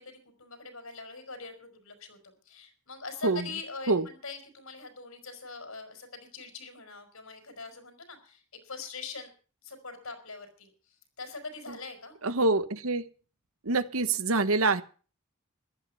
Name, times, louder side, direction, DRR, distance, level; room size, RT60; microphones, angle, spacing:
voice 1, 0.0-9.3 9.6-12.2, left 4 dB, 70° left, 8 dB, 4.6 m, -43 dB
voice 2, 12.2-13.1 13.6-14.8, right 3 dB, 70° right, 13 dB, 1.2 m, -25 dB
15.0 x 12.0 x 5.6 m, 0.38 s
head